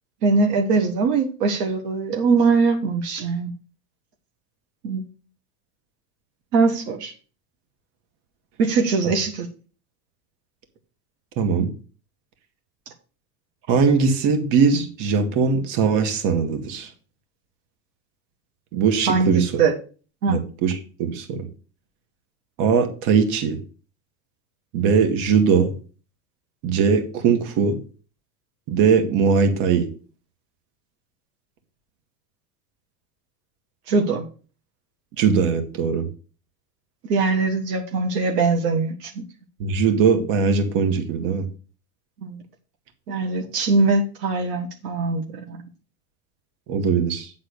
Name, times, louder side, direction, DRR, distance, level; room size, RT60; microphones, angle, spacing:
voice 1, 0.2-3.5 4.8-5.0 6.5-7.1 8.6-9.5 19.1-19.7 20.2-20.4 33.9-34.3 37.1-39.2 42.2-42.4 43.1-45.6, right 4 dB, 80° right, 3 dB, 1.6 m, -21 dB
voice 2, 11.4-11.7 13.7-16.9 18.7-19.5 20.3-21.5 22.6-23.6 24.7-25.7 26.6-27.8 28.7-29.9 35.2-36.1 39.6-41.5 46.7-47.3, right 6 dB, 60° right, 6 dB, 1.9 m, -20 dB
8.3 x 4.0 x 6.7 m, 0.38 s
supercardioid pair, 105°, 48 cm